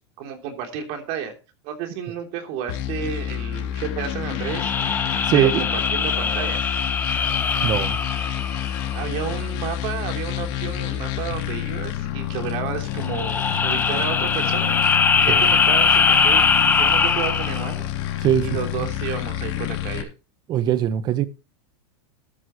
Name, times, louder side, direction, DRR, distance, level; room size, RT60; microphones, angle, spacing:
voice 1, 0.2-1.3 1.6-4.7 5.3-6.7 8.9-14.8 15.2-17.9 18.4-20.1, right 8 dB, 45° right, 3.3 m, -31 dB
sound 1, 2.7-20.0, left 11 dB, 50° left, 3.4 m, -29 dB
sound 2, 4.4-9.2 13.0-17.7, left 5 dB, 15° left, 1.3 m, -21 dB
voice 2, 5.2-5.6 7.6-8.0 15.3-15.4 18.2-18.5 18.8-18.9 20.5-21.3, right 10 dB, 30° right, 1.1 m, -21 dB
13.5 x 12.5 x 3.1 m
supercardioid pair, 160°, 15 cm